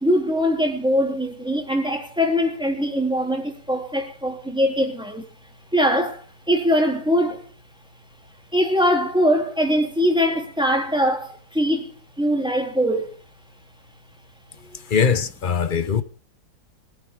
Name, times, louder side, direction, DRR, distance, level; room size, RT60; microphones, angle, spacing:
voice 1, 0.0-5.3 5.7-7.4 8.5-13.1, equal, ahead, 3.0 m, -22 dB
voice 2, 14.7-16.0, left 6 dB, 45° left, 0.6 m, -21 dB
20.0 x 13.5 x 3.6 m
omnidirectional pair, 2.0 m